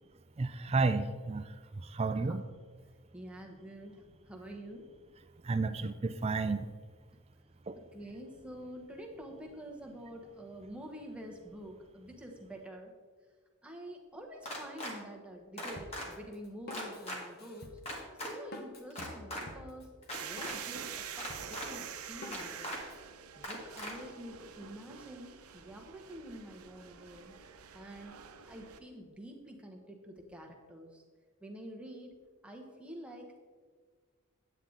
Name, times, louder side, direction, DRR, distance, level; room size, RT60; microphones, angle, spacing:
voice 1, 0.4-2.4 5.4-6.7 7.7-7.8, right 3 dB, 30° right, 11 dB, 0.4 m, -32 dB
voice 2, 3.1-4.9 7.9-12.9 13.6-17.7 18.1-19.9 20.2-22.8 23.4-27.4 27.7-31.0 31.4-32.1 32.4-33.4, equal, 5° right, 0 dB, 1.0 m, -47 dB
sound 1, 14.4-14.9 15.6-16.1 16.7-17.2 17.9-18.3 18.9-19.4 20.0-20.6 21.2-21.7 22.3-22.8 23.4-23.9, left 1 dB, 30° left, 1.6 m, -39 dB
Drum kit, 15.8-23.0, left 2 dB, 45° left, 1.0 m, -50 dB
sound 2, 20.1-28.8, right 8 dB, 85° right, 0.7 m, -46 dB
9.3 x 8.5 x 3.9 m, 1.5 s
head